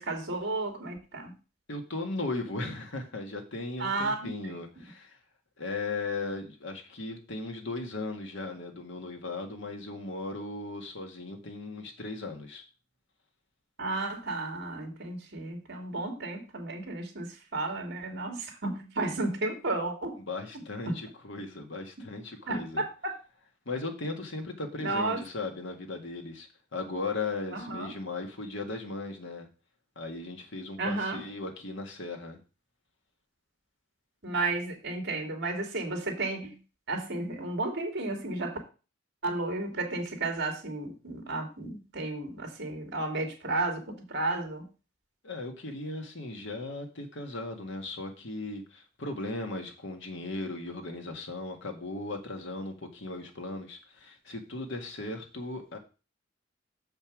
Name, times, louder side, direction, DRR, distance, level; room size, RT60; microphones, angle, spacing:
voice 1, 0.0-1.3 3.8-4.6 13.8-20.2 20.9-21.0 22.5-23.1 24.8-25.2 27.5-27.9 30.8-31.2 34.2-36.6 36.9-38.6 39.2-44.7, right 2 dB, 60° right, 2.5 m, -33 dB
voice 2, 1.7-5.2 5.6-12.6 20.3-22.9 23.7-29.5 30.0-32.4 45.2-55.8, left 2 dB, 70° left, 1.8 m, -37 dB
6.9 x 5.4 x 6.1 m
head